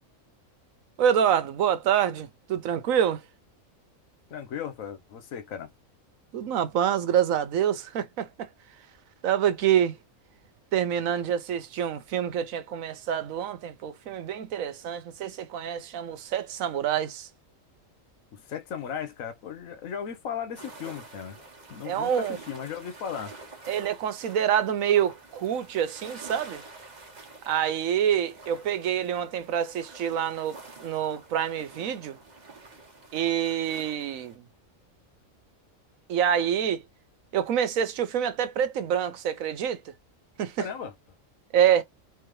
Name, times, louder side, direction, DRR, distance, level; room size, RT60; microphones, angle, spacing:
voice 1, 1.0-3.2 6.3-8.5 9.2-10.0 10.7-17.3 21.8-22.4 23.7-26.6 27.5-32.2 33.1-34.4 36.1-36.8 37.3-39.9 40.4-40.7 41.5-41.8, right 9 dB, 80° right, 1.1 m, -26 dB
voice 2, 4.3-5.7 18.3-21.4 21.7-23.3 40.6-40.9, left 8 dB, 80° left, 1.2 m, -36 dB
sound 1, 20.5-34.4, right 3 dB, 35° right, 1.0 m, -48 dB
3.6 x 3.3 x 3.1 m
omnidirectional pair, 1.4 m